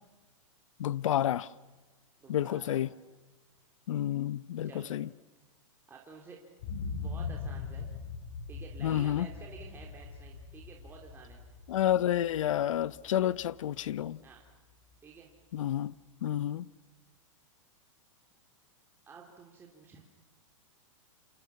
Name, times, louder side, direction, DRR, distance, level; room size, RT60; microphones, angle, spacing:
voice 1, 0.8-1.5 2.3-2.9 3.9-5.1 8.8-9.3 11.7-14.2 15.5-15.9 16.2-16.7, left 11 dB, 70° left, 0.9 m, -30 dB
voice 2, 2.2-2.8 4.6-4.9 5.9-6.4 7.0-7.9 8.5-11.4 13.2-13.3 14.2-14.4 15.0-15.3 19.1-20.0, right 5 dB, 15° right, 3.2 m, -51 dB
sound 1, 6.6-14.5 14.9-15.0, left 4 dB, 50° left, 6.3 m, -42 dB
28.0 x 28.0 x 7.1 m
hypercardioid pair, 150°, 17 cm